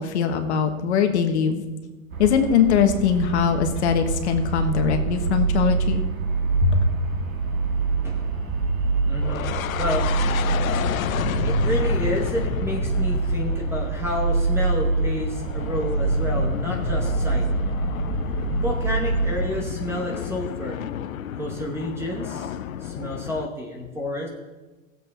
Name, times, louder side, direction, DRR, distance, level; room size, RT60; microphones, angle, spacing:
voice 1, 0.0-1.6 2.2-6.0 6.6-6.8, left 7 dB, 55° left, 6 dB, 1.4 m, -21 dB
sound 1, 2.1-19.4, right 4 dB, 80° right, 2.2 m, -25 dB
voice 2, 9.1-10.1 11.4-17.5 18.6-20.8 21.4-22.6 22.8-24.3, left 1 dB, 5° right, 0 dB, 0.9 m, -30 dB
sound 2, 9.2-23.5, left 10 dB, 80° left, 0.7 m, -31 dB
16.0 x 7.7 x 4.2 m, 1.2 s
hypercardioid pair, 150°, 40 cm